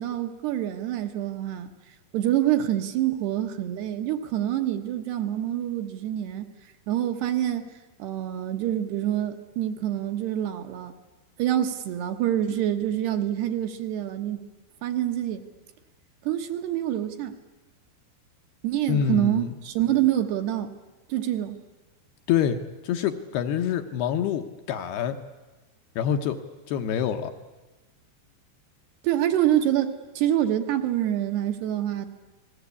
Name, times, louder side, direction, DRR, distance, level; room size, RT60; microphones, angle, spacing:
voice 1, 0.0-1.7 2.1-6.5 6.9-7.7 8.0-10.9 11.4-14.4 14.8-15.4 16.2-17.4 18.6-20.7 21.1-21.6 29.0-32.1, right 11 dB, 70° right, 6 dB, 3.1 m, -26 dB
voice 2, 18.9-19.5 22.3-25.2 26.0-26.4 26.7-27.3, left 9 dB, 70° left, 6 dB, 2.8 m, -26 dB
29.5 x 20.5 x 8.5 m, 1.2 s
omnidirectional pair, 5.3 m